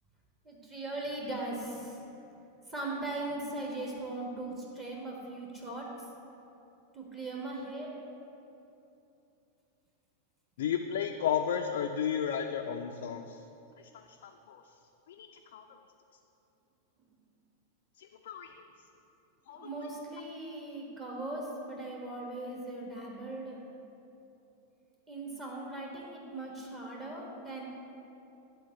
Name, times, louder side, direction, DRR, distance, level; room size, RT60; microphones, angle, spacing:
voice 1, 0.4-2.0 2.7-6.1 6.9-8.0 19.5-23.6 25.1-27.7, right 2 dB, 20° right, -3 dB, 1.5 m, -39 dB
voice 2, 10.6-13.4 13.8-14.6 15.1-15.8 18.0-18.6 19.5-19.7, left 8 dB, 55° left, 4 dB, 0.3 m, -34 dB
8.8 x 3.9 x 6.8 m, 2.8 s
figure-of-eight pair, 90°, 0 cm